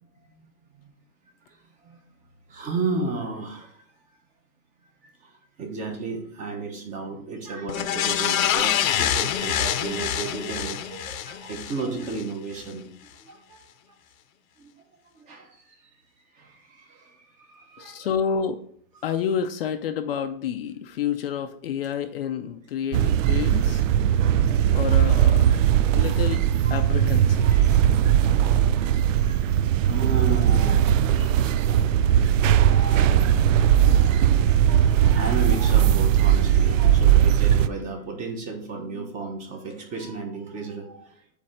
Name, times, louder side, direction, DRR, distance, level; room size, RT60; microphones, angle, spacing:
voice 1, 1.5-2.0 2.5-3.8 5.0-12.9 13.2-13.6 14.6-14.7 15.1-15.6 15.8-15.9 16.3-18.1 22.9-23.0 23.9-24.1 24.4-24.8 25.8-26.2 26.5-26.9 27.5-27.8 28.2-29.5 29.8-31.7 32.4-33.3 33.8-41.2, right 3 dB, 20° right, 3 dB, 0.9 m, -34 dB
sound 1, 7.7-12.2 12.6-12.7, left 10 dB, 75° left, 0.9 m, -26 dB
voice 2, 17.8-18.6 19.0-23.8 24.7-25.6 25.9-26.4 26.7-27.5, left 7 dB, 45° left, 8 dB, 0.5 m, -29 dB
sound 2, 22.9-37.7, right 10 dB, 65° right, 0.5 m, -19 dB
8.6 x 3.3 x 6.5 m, 0.62 s
supercardioid pair, 170°, 41 cm